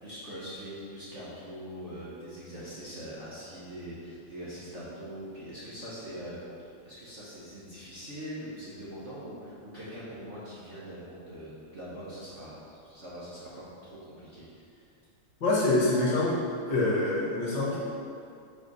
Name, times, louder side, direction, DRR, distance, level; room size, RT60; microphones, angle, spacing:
voice 1, 0.0-14.9, equal, 40° right, -9 dB, 1.2 m, -42 dB
voice 2, 15.4-16.3 16.7-17.8, left 2 dB, 55° left, -6 dB, 1.8 m, -25 dB
5.1 x 4.7 x 5.3 m, 2.5 s
omnidirectional pair, 2.4 m